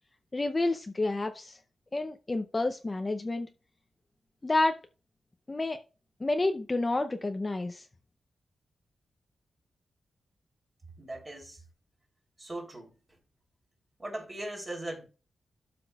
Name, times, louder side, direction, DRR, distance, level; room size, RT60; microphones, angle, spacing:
voice 1, 0.3-1.6 1.9-3.5 4.4-4.8 5.5-5.8 6.2-7.9, left 2 dB, 20° left, 0.5 m, -29 dB
voice 2, 11.0-11.6 12.4-13.0 14.0-15.0, right 1 dB, 20° right, 3.2 m, -39 dB
12.5 x 5.9 x 2.3 m
wide cardioid pair, 160°, 0 cm